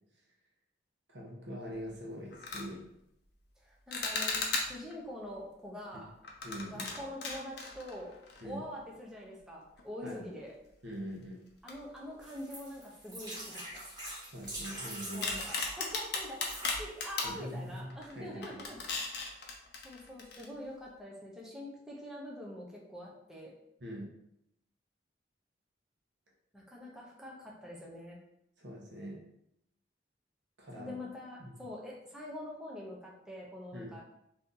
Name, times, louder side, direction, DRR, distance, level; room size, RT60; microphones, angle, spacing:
voice 1, 1.1-2.8 6.4-6.9 8.4-8.6 10.0-10.2 10.8-11.4 14.3-15.5 17.2-17.9 18.1-18.6 23.8-24.1 28.6-29.2 30.6-31.1 31.4-31.5 33.7-33.9, equal, 75° right, -2 dB, 0.9 m, -43 dB
sound 1, 1.7-1.9 2.3-2.7 3.9-4.9 6.2-8.6 8.9-9.0 9.8-9.9 11.7-12.3 12.7-12.8 13.3-14.8 15.2-17.4 17.9-18.1 18.4-20.5, left 4 dB, 60° left, 0.6 m, -37 dB
voice 2, 3.6-6.1 6.7-8.1 8.4-10.5 11.6-13.8 15.1-18.8 19.2-23.5 26.5-28.2 30.7-34.0, left 1 dB, 5° right, -4 dB, 0.5 m, -45 dB
sound 2, 12.2-15.7 16.3-16.8 17.5-17.6 17.8-17.9, right 1 dB, 25° right, 1.2 m, -43 dB
2.7 x 2.6 x 3.6 m, 0.79 s
head